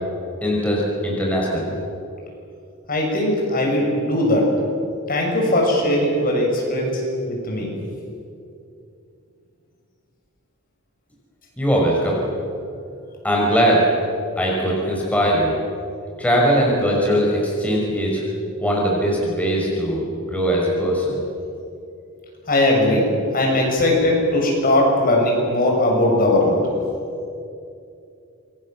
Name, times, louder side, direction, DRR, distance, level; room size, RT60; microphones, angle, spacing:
voice 1, 0.4-1.7 11.6-12.2 13.2-13.9 14.4-15.5 16.2-18.2 18.6-21.2, equal, 5° left, -3 dB, 5.5 m, -20 dB
voice 2, 2.9-4.5 5.1-7.7 22.5-23.0 23.3-26.6, left 1 dB, 40° left, -1 dB, 6.9 m, -19 dB
27.5 x 23.0 x 7.6 m, 2.6 s
head